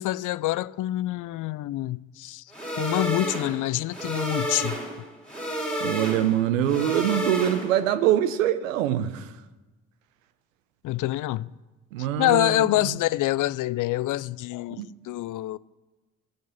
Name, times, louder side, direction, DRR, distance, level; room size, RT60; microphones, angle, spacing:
voice 1, 0.0-2.4 2.8-4.8 10.8-11.5 12.2-15.6, left 16 dB, 55° left, 0.5 m, -26 dB
sound 1, 2.5-7.9, right 1 dB, 5° left, 4.8 m, -31 dB
voice 2, 5.8-9.3 11.9-12.9 14.8-14.9, right 11 dB, 85° right, 0.8 m, -24 dB
16.0 x 7.5 x 7.0 m
hypercardioid pair, 45°, 38 cm